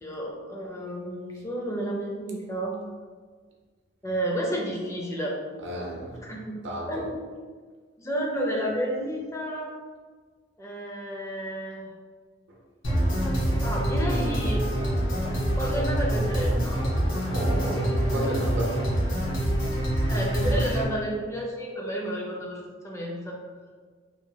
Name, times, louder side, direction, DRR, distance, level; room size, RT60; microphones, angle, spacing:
voice 1, 0.0-2.8 4.0-5.4 6.2-6.6 6.9-7.2 8.0-9.7 10.6-11.9 13.6-14.6 15.6-16.8 20.1-23.4, right 1 dB, 15° left, -2 dB, 0.4 m, -31 dB
voice 2, 5.6-6.3 6.6-7.1 13.3-13.4 17.3-18.8, right 1 dB, 75° right, -2 dB, 0.6 m, -32 dB
sound 1, 12.8-20.8, right 1 dB, 80° left, 0.9 m, -25 dB
2.9 x 2.2 x 2.7 m, 1.5 s
head